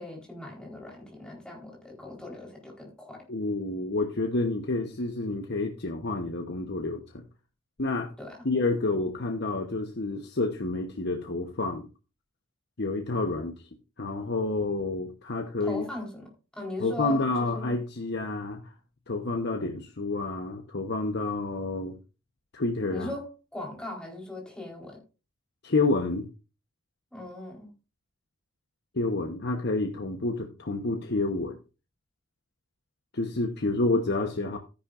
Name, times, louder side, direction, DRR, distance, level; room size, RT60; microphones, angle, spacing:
voice 1, 0.0-3.2 8.2-8.4 15.6-17.8 22.9-25.0 27.1-27.7, left 2 dB, 5° left, -1 dB, 4.1 m, -39 dB
voice 2, 3.3-7.2 7.8-8.1 8.4-11.9 12.8-13.6 14.0-15.8 16.8-18.7 19.1-22.0 22.5-23.1 25.6-26.3 28.9-31.6 33.1-34.6, left 2 dB, 50° left, 3 dB, 1.0 m, -29 dB
13.0 x 10.0 x 2.5 m, 0.32 s
head